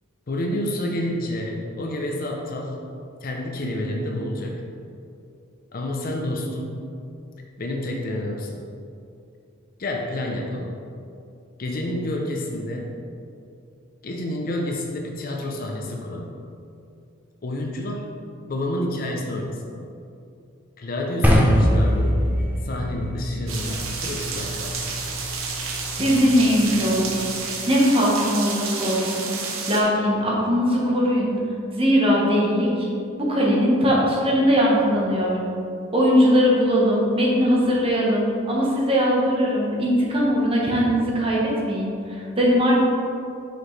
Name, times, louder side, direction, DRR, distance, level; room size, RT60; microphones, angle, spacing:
voice 1, 0.3-2.9 3.2-4.6 5.7-6.9 7.6-8.6 9.8-10.7 11.6-12.9 14.0-16.3 17.4-18.0 18.5-19.6 20.8-22.2 22.6-24.9, left 1 dB, 45° left, 1 dB, 0.6 m, -29 dB
sound 1, 21.2-27.4, equal, 10° right, 0.6 m, -24 dB
sound 2, 23.5-29.8, right 4 dB, 85° right, 0.8 m, -31 dB
voice 2, 26.0-27.3 27.7-29.3 29.7-31.3 31.7-32.9 33.2-35.4 35.9-42.7, equal, 25° right, -4 dB, 1.0 m, -20 dB
5.9 x 5.1 x 3.2 m, 2.5 s
head